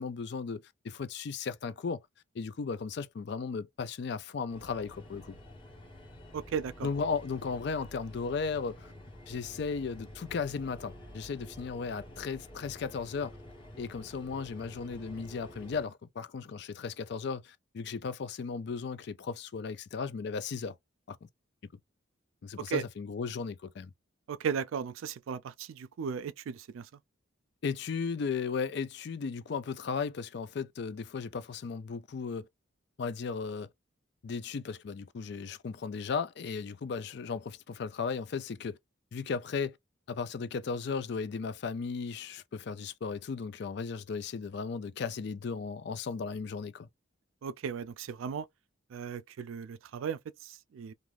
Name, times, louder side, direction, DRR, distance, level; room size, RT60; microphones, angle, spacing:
voice 1, 0.0-2.0 2.3-5.4 6.8-8.9 9.3-13.4 13.8-20.8 21.1-21.2 22.4-23.9 27.6-32.5 33.0-33.7 34.2-38.8 39.1-39.8 40.1-46.9, left 5 dB, 55° left, 0.4 m, -36 dB
sound 1, 4.5-15.9, left 1 dB, 25° left, 1.0 m, -49 dB
voice 2, 6.3-6.9 22.7-22.8 24.3-26.9 47.4-48.5 48.9-50.9, right 7 dB, 80° right, 0.3 m, -36 dB
2.5 x 2.4 x 3.2 m
head